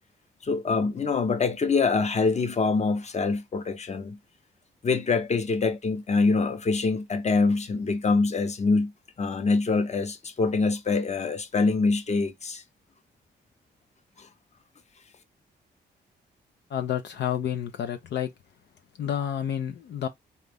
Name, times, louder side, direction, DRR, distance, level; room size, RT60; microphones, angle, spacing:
voice 1, 0.4-4.2 4.8-8.9 9.2-12.6 14.2-14.3, left 4 dB, 35° left, 0.8 m, -25 dB
voice 2, 16.7-18.3 19.0-20.1, left 9 dB, 70° left, 0.6 m, -29 dB
4.1 x 2.4 x 3.4 m
cardioid pair, 80°, 19 cm